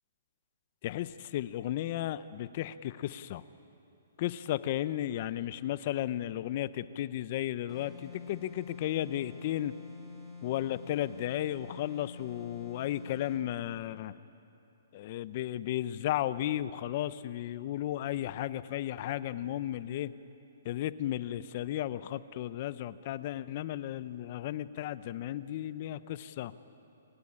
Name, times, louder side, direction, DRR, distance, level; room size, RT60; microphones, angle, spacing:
voice 1, 0.8-3.4 4.2-9.7 10.4-14.1 14.9-20.1 20.6-26.5, left 13 dB, 35° left, 15 dB, 0.7 m, -34 dB
sound 1, 7.7-13.5, left 4 dB, ahead, 3.3 m, -47 dB
26.0 x 16.0 x 9.8 m, 2.7 s
hypercardioid pair, 165°, 0 cm